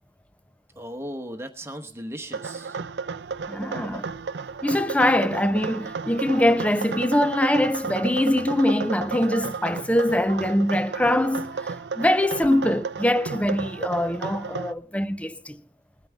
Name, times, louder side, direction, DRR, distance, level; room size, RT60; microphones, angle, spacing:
voice 1, 0.8-2.8, equal, 15° right, 1.1 m, -37 dB
sound 1, 2.3-14.7, right 5 dB, 75° right, 0.5 m, -33 dB
voice 2, 3.5-4.1 4.6-15.6, left 1 dB, 10° left, 0.5 m, -23 dB
21.0 x 9.2 x 3.5 m
head